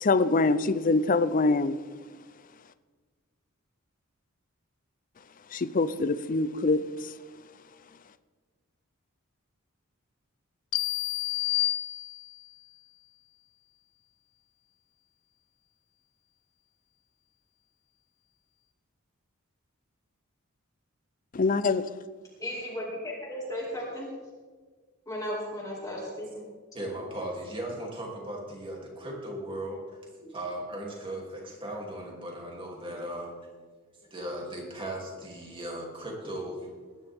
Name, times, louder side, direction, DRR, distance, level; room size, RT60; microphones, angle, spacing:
voice 1, 0.0-1.8 5.5-7.1 21.3-21.8, left 3 dB, 40° left, 0.5 m, -24 dB
sound 1, 10.7-12.5, left 16 dB, 80° left, 0.7 m, -29 dB
voice 2, 22.4-24.1 25.1-26.4, left 1 dB, 15° left, 2.4 m, -35 dB
voice 3, 26.7-29.8 30.2-33.3 34.1-37.0, right 1 dB, 25° right, 2.8 m, -37 dB
20.5 x 10.0 x 3.6 m
head